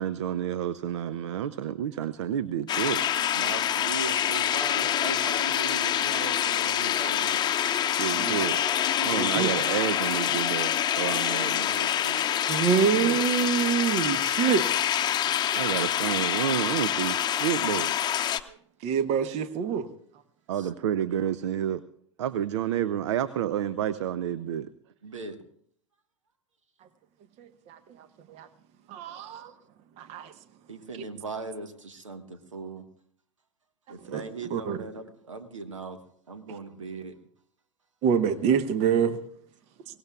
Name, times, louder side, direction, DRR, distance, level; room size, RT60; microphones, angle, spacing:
voice 1, 0.0-3.0 7.9-8.6 9.0-11.7 13.0-13.2 15.2-17.9 20.5-21.8 22.2-24.7, right 10 dB, 65° right, 16 dB, 0.6 m, -30 dB
sound 1, 2.7-18.4, left 10 dB, 25° left, 0.8 m, -26 dB
voice 2, 3.3-7.4 11.3-12.2 20.6-20.7 25.0-25.4 30.7-32.9 33.9-36.0 36.3-37.2, right 3 dB, 80° right, 9 dB, 1.4 m, -39 dB
voice 3, 8.0-8.4 9.0-9.5 12.5-14.7 18.8-19.9 27.4-28.5 28.9-29.5 30.0-30.3 34.0-34.2 34.5-34.8 38.0-39.2, right 7 dB, 40° right, 12 dB, 1.1 m, -26 dB
23.0 x 18.0 x 2.4 m, 0.63 s
figure-of-eight pair, 90°, 16 cm